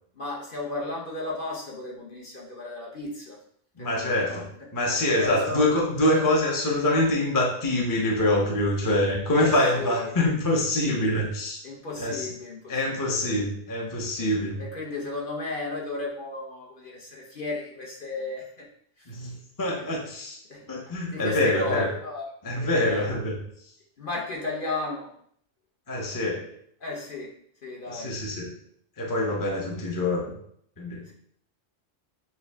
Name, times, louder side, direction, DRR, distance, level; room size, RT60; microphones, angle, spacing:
voice 1, 0.1-3.4 3.8-4.5 5.2-5.7 6.0-6.2 9.4-10.2 11.6-13.3 14.6-18.7 19.0-19.3 19.7-19.9 20.5-22.3 22.6-23.1 24.0-25.1 26.8-27.3 27.6-28.1 31.1-31.2, left 2 dB, 50° left, -2 dB, 1.0 m, -34 dB
voice 2, 3.8-11.6 12.0-12.3 12.7-14.6 19.1-20.4 20.7-21.9 22.4-23.4 25.9-26.5 27.9-28.5 29.0-30.3 30.8-31.0, left 1 dB, 20° left, -1 dB, 0.7 m, -25 dB
6.8 x 2.3 x 3.4 m, 0.65 s
omnidirectional pair, 1.2 m